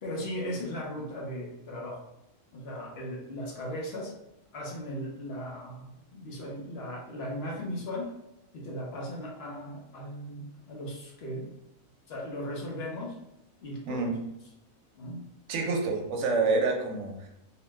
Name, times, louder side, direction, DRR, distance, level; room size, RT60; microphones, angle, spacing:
voice 1, 0.0-2.1 2.5-4.1 4.5-8.1 8.5-11.5 12.1-13.2 13.6-14.1 15.0-15.2, equal, 60° left, -2 dB, 0.7 m, -37 dB
voice 2, 13.9-14.2 15.5-17.3, right 3 dB, 65° right, 1 dB, 0.9 m, -27 dB
2.7 x 2.2 x 3.1 m, 0.85 s
omnidirectional pair, 1.4 m